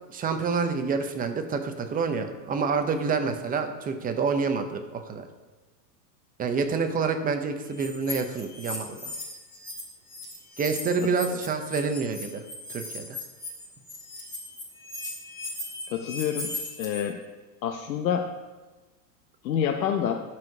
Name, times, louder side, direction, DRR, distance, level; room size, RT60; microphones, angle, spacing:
voice 1, 0.1-5.2 6.4-9.0 10.6-13.2, right 5 dB, 15° right, 6 dB, 0.7 m, -28 dB
sound 1, 7.7-9.8 10.1-17.0, left 2 dB, 10° left, 2.6 m, -37 dB
voice 2, 15.9-16.5 16.8-17.2 17.6-18.3 19.4-20.2, left 8 dB, 85° left, 3 dB, 0.9 m, -27 dB
11.0 x 4.7 x 5.9 m, 1.2 s
hypercardioid pair, 125°, 50 cm